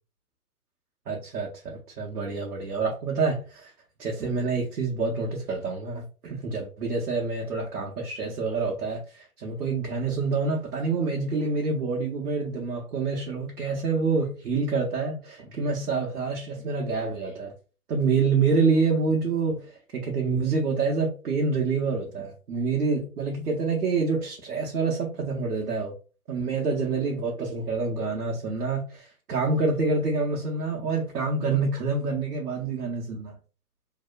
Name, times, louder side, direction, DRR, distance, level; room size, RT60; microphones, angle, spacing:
voice 1, 1.1-3.7 4.0-17.5 17.9-25.9 26.3-33.3, right 4 dB, 80° right, 0.8 m, -27 dB
2.8 x 2.1 x 2.3 m
figure-of-eight pair, 125°, 45 cm